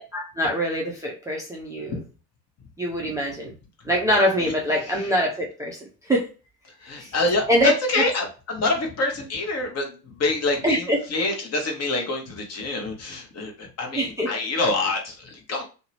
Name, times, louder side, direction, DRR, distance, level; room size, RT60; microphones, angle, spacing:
voice 1, 0.0-2.0 2.8-3.5 3.9-6.3 6.9-7.1 7.5-8.0 10.6-11.0 14.0-14.3, equal, 5° right, -3 dB, 0.5 m, -24 dB
voice 2, 4.8-5.1 6.8-15.6, left 2 dB, 35° left, 2 dB, 0.9 m, -26 dB
2.7 x 2.1 x 2.8 m, 0.34 s
figure-of-eight pair, 65°, 47 cm